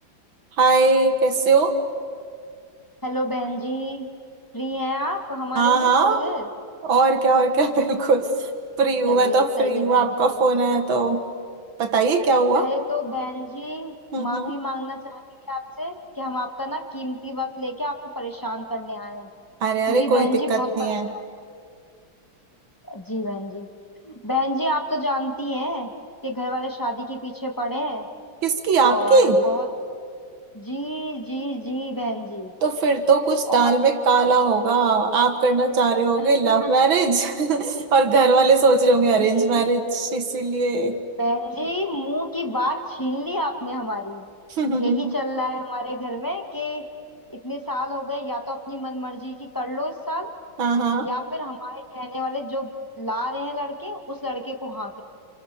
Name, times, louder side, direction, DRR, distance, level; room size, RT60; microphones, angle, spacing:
voice 1, 0.6-1.8 5.6-6.2 6.8-8.5 8.8-11.2 11.8-12.7 14.1-14.5 19.6-21.1 28.4-29.4 32.6-41.0 44.6-45.1 50.6-51.1, right 4 dB, 90° right, 6 dB, 2.6 m, -19 dB
voice 2, 3.0-4.1 4.5-6.5 9.1-10.4 12.5-15.2 15.5-19.3 19.9-21.2 22.8-23.7 24.0-25.9 26.2-28.1 28.8-29.7 30.5-32.5 33.5-33.9 36.2-36.7 39.1-39.7 41.2-44.2 44.7-50.3 51.0-55.0, left 1 dB, 10° left, 3 dB, 1.9 m, -29 dB
30.0 x 28.0 x 7.0 m, 2.2 s
omnidirectional pair, 2.1 m